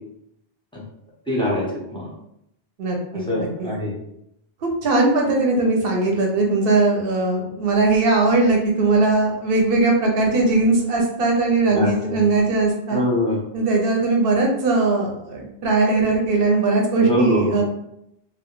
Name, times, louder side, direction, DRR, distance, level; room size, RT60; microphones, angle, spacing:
voice 1, 1.3-2.1 3.3-3.9 11.7-12.2 12.9-13.4 17.1-17.6, left 1 dB, 5° left, -6 dB, 0.4 m, -23 dB
voice 2, 2.8-3.7 4.6-13.0 13.5-17.6, right 3 dB, 70° right, 0 dB, 0.7 m, -19 dB
2.2 x 2.0 x 2.9 m, 0.79 s
omnidirectional pair, 1.1 m